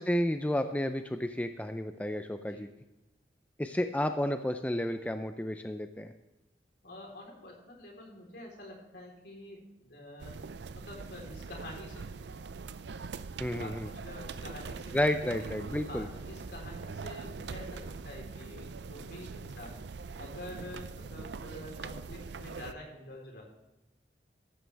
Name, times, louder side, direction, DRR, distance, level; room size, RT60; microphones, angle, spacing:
voice 1, 0.0-2.7 3.6-6.1 13.4-13.9 14.9-16.1, left 1 dB, 10° left, 7 dB, 0.4 m, -31 dB
voice 2, 6.8-10.4 10.7-12.1 13.6-15.0 15.9-23.4, left 1 dB, 65° left, 0 dB, 3.9 m, -47 dB
sound 1, 10.2-22.7, right 4 dB, 75° right, 0.5 m, -42 dB
14.5 x 12.5 x 3.4 m, 1.0 s
head